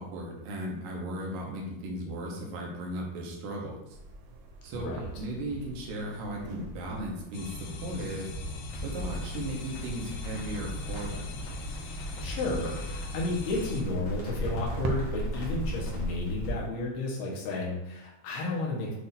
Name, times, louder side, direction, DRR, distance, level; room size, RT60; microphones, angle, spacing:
voice 1, 0.0-4.0 4.6-8.3 8.8-11.3, right 1 dB, 70° right, -1 dB, 2.4 m, -36 dB
sound 1, 3.9-15.8, right 3 dB, 90° right, 1.8 m, -41 dB
voice 2, 4.7-5.1 12.2-19.0, left 2 dB, 70° left, -3 dB, 3.0 m, -32 dB
sound 2, 7.3-13.8, left 3 dB, 85° left, 1.9 m, -40 dB
Crackle, 8.7-16.5, left 1 dB, 55° left, 1.4 m, -38 dB
8.2 x 2.8 x 4.2 m, 0.91 s
omnidirectional pair, 4.8 m